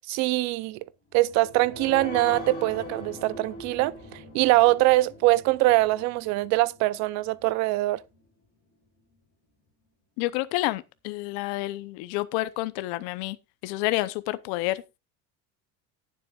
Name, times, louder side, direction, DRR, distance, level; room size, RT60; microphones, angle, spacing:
voice 1, 0.1-0.8 1.1-4.0 4.3-8.0, right 19 dB, 55° right, 0.6 m, -23 dB
sound 1, 1.1-8.2 8.7-8.8 9.1-9.2, left 1 dB, 30° left, 6.1 m, -41 dB
voice 2, 10.2-13.4 13.6-15.0, left 18 dB, 90° left, 0.8 m, -29 dB
18.5 x 7.5 x 2.4 m
cardioid pair, 170°, 33 cm